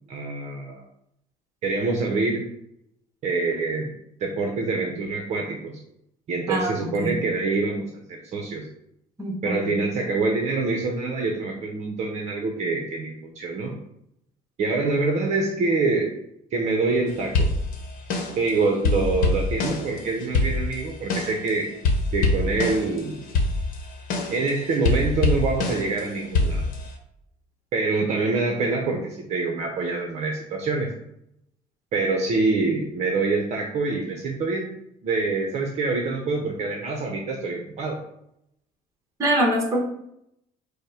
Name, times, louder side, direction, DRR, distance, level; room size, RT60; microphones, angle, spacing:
voice 1, 0.1-0.8 1.6-2.4 3.2-3.9 4.2-5.8 6.3-8.6 9.4-13.8 14.6-16.1 16.5-17.5 18.4-21.7 22.1-23.3 24.3-26.7 27.7-30.9 31.9-34.7 35.0-38.0, right 3 dB, 45° right, 1 dB, 0.7 m, -25 dB
voice 2, 6.5-7.2 9.2-9.7 39.2-39.8, right 1 dB, 20° right, 0 dB, 1.0 m, -24 dB
sound 1, 17.3-18.5 18.8-21.5 21.8-23.0 23.3-26.0 26.3-26.9, left 2 dB, 65° left, 0.9 m, -24 dB
5.2 x 2.1 x 4.7 m, 0.77 s
cardioid pair, 150°, 16 cm